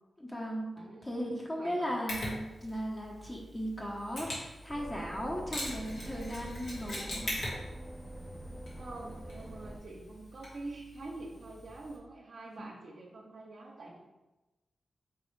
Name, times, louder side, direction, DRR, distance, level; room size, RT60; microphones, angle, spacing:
voice 1, 0.2-0.7 1.0-7.5, equal, 25° left, -2 dB, 0.8 m, -37 dB
voice 2, 0.8-1.1 1.6-1.9 8.7-14.0, right 2 dB, 75° right, -3 dB, 0.5 m, -46 dB
Mechanisms, 2.1-12.0, left 1 dB, 80° left, 1.4 m, -43 dB
sound 1, 4.7-9.8, right 1 dB, 10° right, 0.4 m, -45 dB
4.4 x 3.2 x 3.1 m, 1.1 s
cardioid pair, 55°, 0 cm